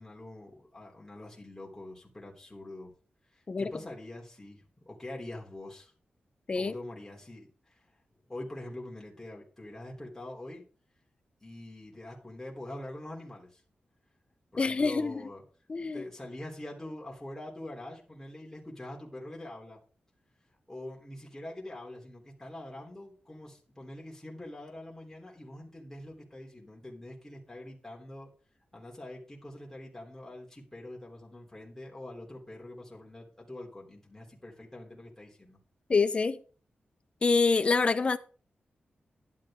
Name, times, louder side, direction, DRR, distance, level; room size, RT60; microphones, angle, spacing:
voice 1, 0.0-2.9 3.3-5.9 6.5-7.9 8.3-10.6 11.4-13.6 14.5-15.4 15.8-19.8 20.7-28.3 28.7-35.6, left 1 dB, 10° left, 3.5 m, -44 dB
voice 2, 14.6-15.2 15.7-16.0 35.9-36.4 37.2-38.2, left 4 dB, 35° left, 0.9 m, -26 dB
11.5 x 11.0 x 3.8 m
wide cardioid pair, 160°, 3 cm